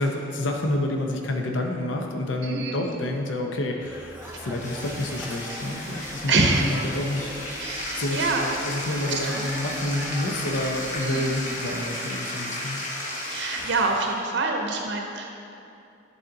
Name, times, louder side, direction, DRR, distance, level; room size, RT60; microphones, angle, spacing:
voice 1, 0.0-7.3 7.9-12.8, left 1 dB, 80° left, 2 dB, 0.7 m, -29 dB
voice 2, 2.4-2.8 5.5-5.6 6.0-6.7 7.6-8.4 9.3-9.4 11.0-11.3 13.3-15.2, right 3 dB, 65° right, 1 dB, 0.6 m, -26 dB
sound 1, 3.8-11.8, right 1 dB, 10° right, 0.5 m, -41 dB
Bathtub (filling or washing), 4.1-14.2, left 1 dB, 45° left, 1.1 m, -34 dB
10.5 x 4.2 x 3.8 m, 2.7 s
head